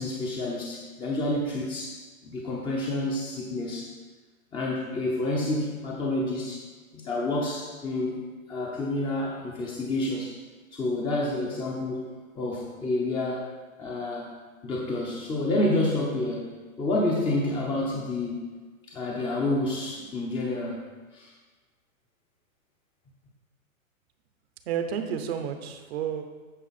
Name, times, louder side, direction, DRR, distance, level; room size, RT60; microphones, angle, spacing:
voice 1, 0.0-3.9 4.5-6.7 6.9-8.2 8.5-10.3 10.7-13.5 13.8-14.3 14.6-18.5 18.9-20.8 21.1-21.3, left 2 dB, 10° left, -3 dB, 0.7 m, -29 dB
voice 2, 24.7-26.2, right 8 dB, 45° right, 7 dB, 0.9 m, -31 dB
9.2 x 5.3 x 4.2 m, 1.3 s
hypercardioid pair, 125°, 43 cm